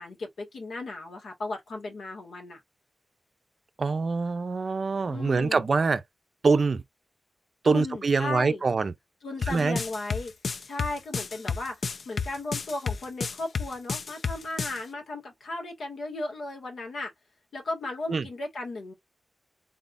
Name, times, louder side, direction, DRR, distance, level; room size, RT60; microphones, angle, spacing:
voice 1, 0.0-2.6 5.1-5.7 7.6-8.6 9.2-10.3 10.6-17.1 17.5-18.9, left 2 dB, 80° left, 2.0 m, -35 dB
voice 2, 3.8-6.0 6.4-6.8 7.6-8.9 9.5-9.8 18.1-18.3, right 4 dB, 45° right, 0.5 m, -24 dB
sound 1, 9.4-14.8, left 5 dB, 55° left, 0.5 m, -31 dB
4.1 x 3.7 x 2.5 m
wide cardioid pair, 155°, 0 cm